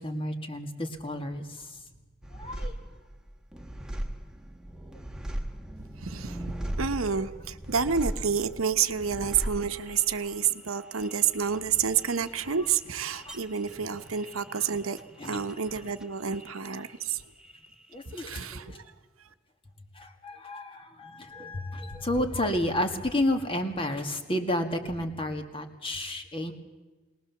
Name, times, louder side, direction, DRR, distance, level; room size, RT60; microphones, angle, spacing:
voice 1, 0.0-1.8 2.3-2.8 7.2-7.3 13.1-13.4 14.5-14.7 15.2-15.4 16.7-16.8 17.9-18.8 19.9-26.5, left 1 dB, 25° left, 5 dB, 1.9 m, -31 dB
sound 1, 2.2-17.1 17.4-18.2, right 1 dB, 5° right, 1.1 m, -39 dB
voice 2, 6.0-15.0 15.2-17.2 18.1-18.8, right 7 dB, 80° right, 10 dB, 1.0 m, -29 dB
22.0 x 19.5 x 7.1 m, 1.3 s
head